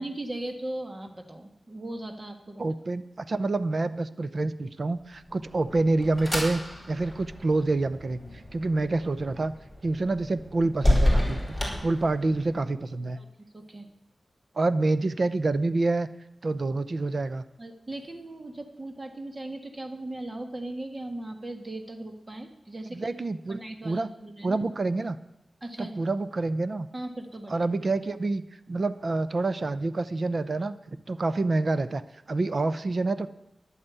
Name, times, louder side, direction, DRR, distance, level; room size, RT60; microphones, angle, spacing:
voice 1, 0.0-2.6 13.2-13.3 13.5-13.8 17.6-23.1 23.5-24.6 25.6-25.9 26.9-27.6, right 1 dB, 35° right, 5 dB, 1.7 m, -38 dB
voice 2, 2.6-6.6 6.9-8.2 8.5-9.5 9.8-11.4 11.8-13.2 14.6-16.1 16.4-17.4 22.9-24.1 24.4-25.2 25.8-26.9 27.5-28.4 28.7-32.0 32.3-33.3, right 2 dB, 55° right, 13 dB, 0.7 m, -27 dB
sound 1, 5.2-12.6, left 1 dB, 5° right, 5.2 m, -30 dB
11.0 x 8.9 x 8.2 m, 0.87 s
wide cardioid pair, 85°, 0 cm